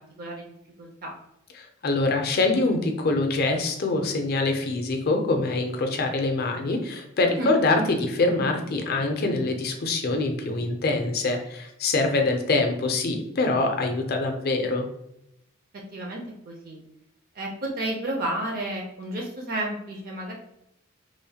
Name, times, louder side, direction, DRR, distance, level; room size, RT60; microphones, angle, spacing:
voice 1, 0.2-0.5 0.8-1.1 7.2-7.6 15.9-16.8 17.3-20.3, right 1 dB, 45° right, 0 dB, 0.4 m, -31 dB
voice 2, 1.6-14.9, left 2 dB, 45° left, 4 dB, 0.4 m, -24 dB
3.0 x 2.1 x 2.7 m, 0.80 s
head